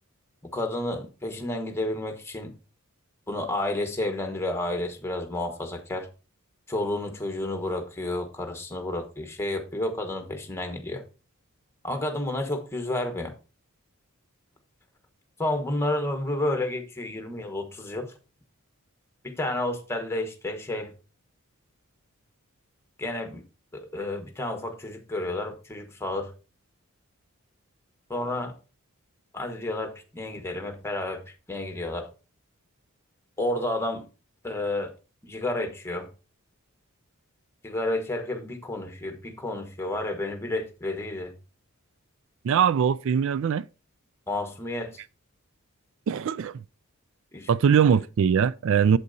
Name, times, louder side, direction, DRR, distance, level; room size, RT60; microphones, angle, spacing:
voice 1, 0.4-2.5 3.3-6.1 6.7-11.0 11.8-13.3 15.4-18.1 19.2-20.9 23.0-23.4 23.7-26.3 28.1-28.5 29.3-31.2 31.5-32.1 33.4-34.1 34.4-34.9 35.2-36.1 37.6-41.3 44.3-45.0 47.3-47.8, left 1 dB, 10° left, 1.2 m, -31 dB
voice 2, 42.4-43.6 46.1-46.6 47.5-49.0, right 7 dB, 60° right, 0.3 m, -21 dB
8.3 x 7.5 x 2.7 m
head